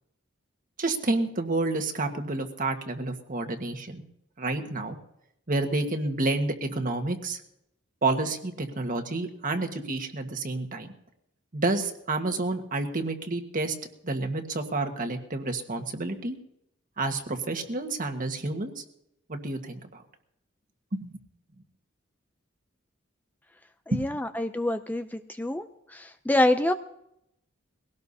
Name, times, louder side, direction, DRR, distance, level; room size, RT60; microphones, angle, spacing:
voice 1, 0.8-4.0 4.4-5.0 5.5-7.4 8.0-10.9 11.5-13.7 14.0-16.4 17.0-18.8 19.3-20.0 20.9-21.1 23.9-24.0, right 2 dB, 45° right, 5 dB, 1.5 m, -29 dB
voice 2, 23.9-25.7 25.9-26.7, left 1 dB, 10° left, 9 dB, 0.4 m, -26 dB
21.5 x 17.5 x 2.8 m, 0.78 s
head